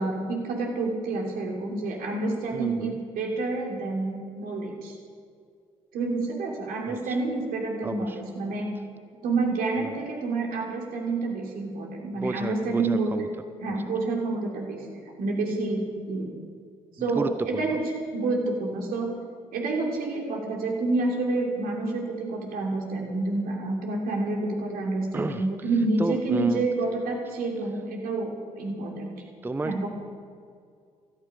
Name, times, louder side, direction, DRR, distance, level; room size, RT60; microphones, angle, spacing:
voice 1, 0.0-4.9 5.9-8.7 9.2-13.3 13.6-14.9 15.2-16.3 17.0-17.8 18.1-19.1 19.5-29.1 29.6-29.9, right 3 dB, 55° right, 0 dB, 3.0 m, -28 dB
voice 2, 2.5-3.0 6.9-7.2 7.8-8.2 9.8-10.0 12.2-13.3 13.7-13.8 17.0-17.8 25.1-25.7 26.0-26.7 29.4-29.9, right 2 dB, 10° right, 10 dB, 0.6 m, -32 dB
17.0 x 13.5 x 5.1 m, 2.2 s
figure-of-eight pair, 45°, 18 cm